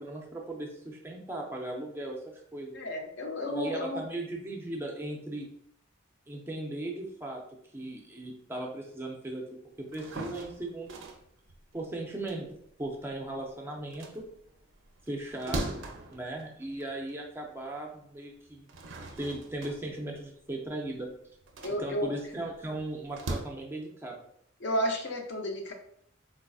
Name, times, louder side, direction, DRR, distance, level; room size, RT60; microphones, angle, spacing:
voice 1, 0.0-2.2 2.5-2.8 3.5-5.5 6.3-7.4 7.7-11.0 11.7-12.5 12.8-14.3 15.1-15.8 16.1-18.7 19.2-21.1 21.8-24.2, right 1 dB, 10° right, -1 dB, 0.4 m, -37 dB
voice 2, 2.7-4.0 15.5-15.6 21.6-22.1 24.6-25.7, equal, 55° left, 3 dB, 0.5 m, -32 dB
sound 1, 9.8-13.4 13.8-17.3 17.7-17.8 18.5-23.4, right 2 dB, 70° right, 0.5 m, -41 dB
3.9 x 2.5 x 2.3 m, 0.67 s
head